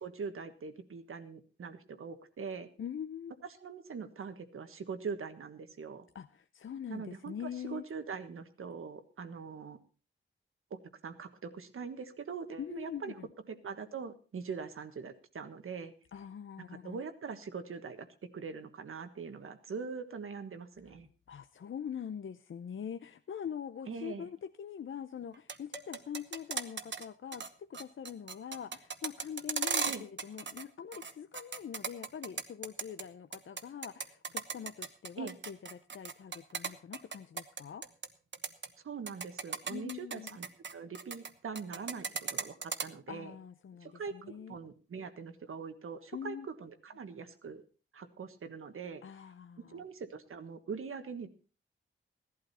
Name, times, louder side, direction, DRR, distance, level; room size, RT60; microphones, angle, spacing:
voice 1, 0.0-2.7 3.6-6.1 6.9-9.8 10.7-10.8 11.0-13.1 13.5-15.9 16.7-18.1 18.3-21.1 23.9-24.3 29.8-30.0 35.2-35.4 38.8-43.3 43.8-47.6 47.9-49.0 49.7-51.3, right 5 dB, 90° right, 9 dB, 1.4 m, -42 dB
voice 2, 2.8-3.3 6.1-7.8 12.6-13.3 16.1-17.0 21.3-37.9 39.7-40.3 43.1-44.6 46.1-46.5 49.0-49.8, left 8 dB, 70° left, 10 dB, 0.6 m, -43 dB
sound 1, 25.3-27.0 27.3-27.5 27.7-30.6 30.9-33.0 33.3-38.1 38.3-38.7 39.1-41.3 41.6-42.9, right 5 dB, 60° right, 1.1 m, -36 dB
16.5 x 11.5 x 4.2 m, 0.35 s
wide cardioid pair, 120°, 21 cm